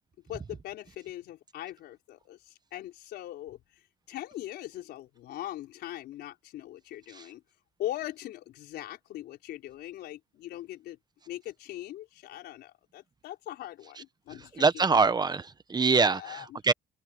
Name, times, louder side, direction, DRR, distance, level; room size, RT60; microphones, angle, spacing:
voice 1, 0.2-3.6 4.1-7.4 7.8-11.0 11.3-14.9 16.0-16.7, left 14 dB, 75° left, 4.5 m, -41 dB
voice 2, 14.4-16.7, right 4 dB, 25° right, 1.1 m, -25 dB
open air
cardioid pair, 110°, 17 cm